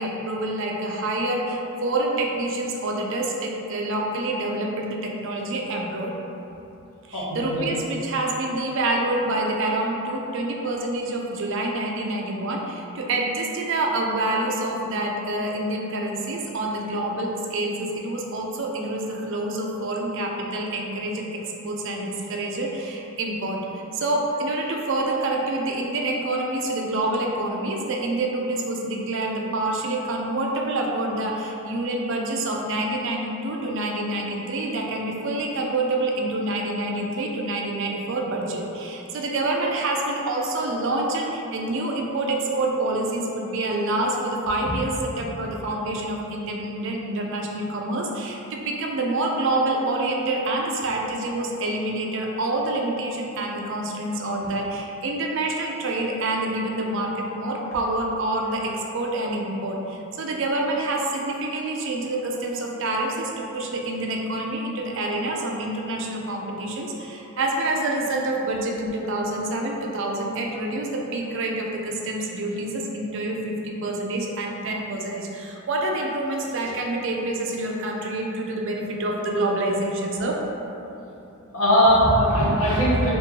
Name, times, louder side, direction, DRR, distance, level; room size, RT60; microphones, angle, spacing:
voice 1, 0.0-6.1 7.1-80.4, right 2 dB, 55° right, 0 dB, 0.4 m, -27 dB
voice 2, 7.1-7.6 81.5-83.1, equal, 65° left, -8 dB, 1.0 m, -19 dB
3.0 x 2.7 x 3.6 m, 2.9 s
head